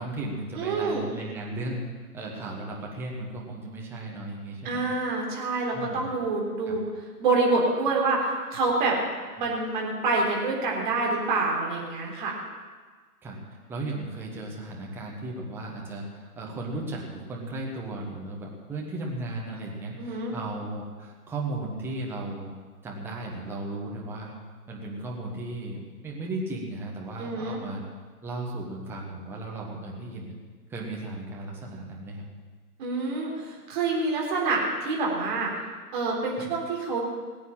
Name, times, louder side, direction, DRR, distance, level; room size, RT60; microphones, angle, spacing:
voice 1, 0.0-1.9 2.1-4.9 5.7-6.1 6.7-6.8 9.4-9.5 13.2-13.4 13.7-22.6 22.8-24.3 24.7-27.8 28.2-30.4 30.7-32.3 36.4-36.5, right 2 dB, 5° right, -3 dB, 1.3 m, -35 dB
voice 2, 0.5-1.0 4.6-6.8 7.2-9.0 9.4-12.4 20.0-20.3 27.2-27.6 32.8-35.5 35.9-37.0, right 3 dB, 30° right, -2 dB, 3.8 m, -27 dB
19.5 x 8.5 x 7.4 m, 1.4 s
figure-of-eight pair, 135°, 47 cm